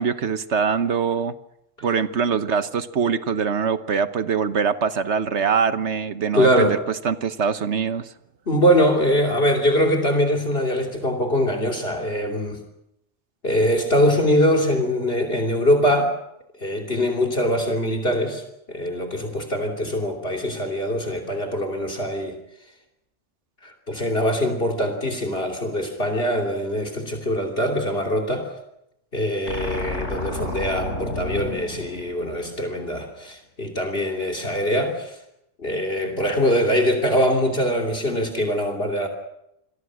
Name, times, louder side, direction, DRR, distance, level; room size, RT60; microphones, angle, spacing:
voice 1, 0.0-1.3 1.8-6.8 7.0-8.1, right 6 dB, 65° right, 11 dB, 1.3 m, -23 dB
voice 2, 6.3-6.8 8.5-12.6 13.4-16.1 16.6-18.4 18.7-22.4 23.6-28.5 29.1-35.1 35.6-39.1, equal, 50° left, 6 dB, 3.3 m, -22 dB
sound 1, 29.5-32.8, left 1 dB, 70° left, 4.8 m, -31 dB
28.5 x 22.5 x 6.3 m, 0.81 s
omnidirectional pair, 1.3 m